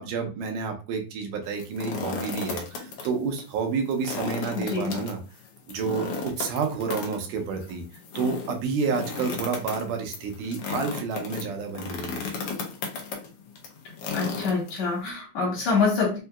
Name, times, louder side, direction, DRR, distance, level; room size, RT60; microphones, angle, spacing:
voice 1, 0.0-5.2 5.7-7.8 8.2-12.2, right 5 dB, 80° right, 4 dB, 2.2 m, -29 dB
sound 1, 1.4-3.1 3.4-3.5 3.9-15.1, left 4 dB, 85° left, 1.3 m, -34 dB
voice 2, 4.5-4.9 14.1-16.2, left 4 dB, 60° left, -3 dB, 2.4 m, -25 dB
5.3 x 2.7 x 2.2 m, 0.33 s
omnidirectional pair, 3.7 m